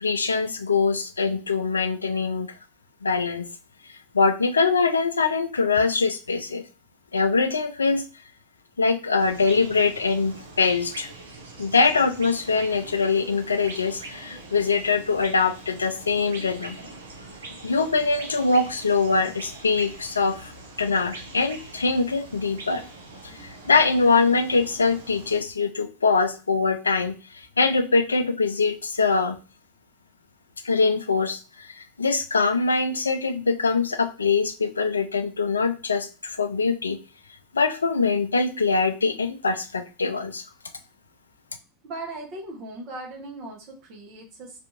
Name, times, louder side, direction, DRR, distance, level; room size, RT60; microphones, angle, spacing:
voice 1, 0.0-2.5 3.0-3.5 4.1-6.6 7.1-8.0 8.8-11.1 11.6-16.8 17.6-20.5 20.8-22.8 23.2-29.4 30.6-37.0 37.5-40.4, left 4 dB, 85° left, 8 dB, 0.3 m, -23 dB
sound 1, 9.2-25.4, right 2 dB, 75° right, 0.6 m, -43 dB
voice 2, 41.8-44.6, right 2 dB, 50° right, 0 dB, 0.9 m, -38 dB
2.6 x 2.5 x 2.4 m, 0.34 s
figure-of-eight pair, 85°, 0 cm